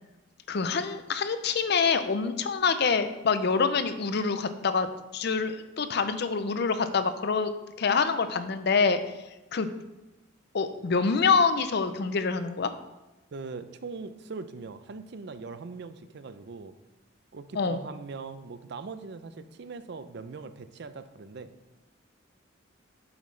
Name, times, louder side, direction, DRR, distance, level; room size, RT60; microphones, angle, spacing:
voice 1, 0.5-4.9 5.1-9.0 9.5-9.7 10.5-12.7 17.6-17.8, left 5 dB, 55° left, 10 dB, 0.5 m, -26 dB
voice 2, 13.3-16.7 17.3-21.5, right 4 dB, 60° right, 11 dB, 0.5 m, -41 dB
8.2 x 7.1 x 3.2 m, 1.0 s
head